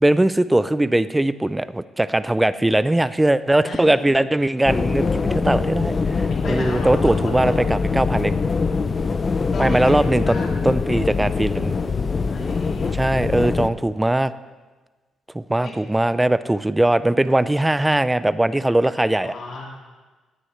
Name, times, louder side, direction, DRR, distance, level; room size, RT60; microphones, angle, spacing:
voice 1, 0.0-8.3 9.6-10.4 10.6-11.8 12.9-14.3 15.3-19.3, right 1 dB, 10° right, 15 dB, 0.4 m, -20 dB
voice 2, 3.6-4.3 6.3-7.6 9.5-10.5 12.3-12.9 15.6-15.7 19.2-19.7, left 3 dB, 60° left, -2 dB, 2.3 m, -34 dB
sound 1, 4.7-13.7, left 4 dB, 35° left, 0.6 m, -23 dB
17.0 x 9.7 x 3.2 m, 1.3 s
cardioid pair, 90°, 0 cm